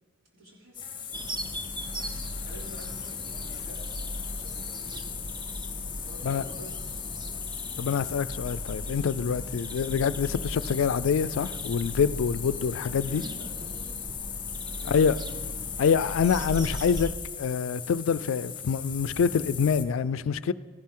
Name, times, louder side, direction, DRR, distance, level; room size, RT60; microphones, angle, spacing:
voice 1, 0.3-1.5 2.4-5.7 6.0-6.8 7.0-7.3 12.4-12.5 13.0-13.9 14.8-15.4, equal, 70° right, 3.2 m, -48 dB
sound 1, 0.7-19.8, left 8 dB, 25° left, 0.8 m, -38 dB
sound 2, 1.1-17.2, right 1 dB, 20° right, 0.5 m, -38 dB
voice 2, 7.8-13.2 14.8-15.2 15.8-17.1 17.4-20.5, left 6 dB, 70° left, 0.3 m, -26 dB
14.5 x 11.5 x 3.7 m
head